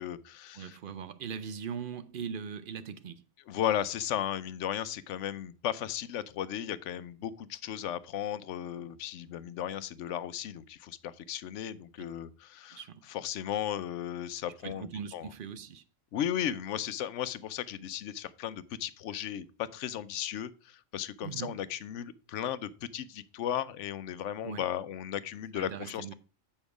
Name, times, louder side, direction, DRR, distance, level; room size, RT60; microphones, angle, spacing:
voice 1, 0.0-0.8 3.5-12.8 13.1-15.3 16.1-26.1, left 10 dB, 75° left, 0.9 m, -35 dB
voice 2, 0.5-3.2 12.7-13.0 14.6-15.8 21.2-21.6 24.4-24.7 25.5-26.1, right 7 dB, 55° right, 0.6 m, -40 dB
7.2 x 5.3 x 4.7 m
omnidirectional pair, 1.3 m